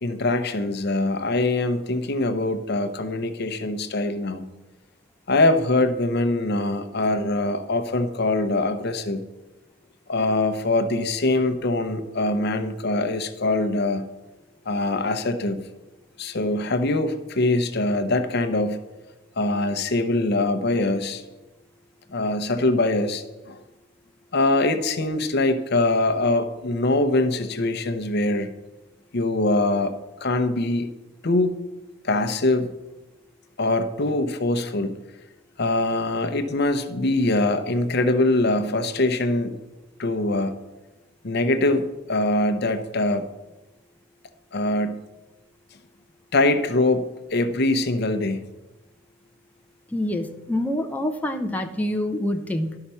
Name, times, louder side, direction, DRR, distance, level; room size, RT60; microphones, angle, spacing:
voice 1, 0.0-4.4 5.3-9.2 10.1-14.0 14.7-15.6 16.2-18.8 19.4-21.2 22.1-23.6 24.3-28.5 29.1-29.9 30.2-30.9 31.2-31.6 32.0-32.7 33.6-34.9 35.6-39.5 40.0-40.5 41.2-43.3 44.5-45.0 46.3-47.0 47.3-48.4, left 2 dB, 55° left, 9 dB, 0.7 m, -23 dB
voice 2, 49.9-52.8, left 1 dB, 10° left, 3 dB, 0.6 m, -26 dB
12.0 x 5.8 x 5.5 m, 1.1 s
head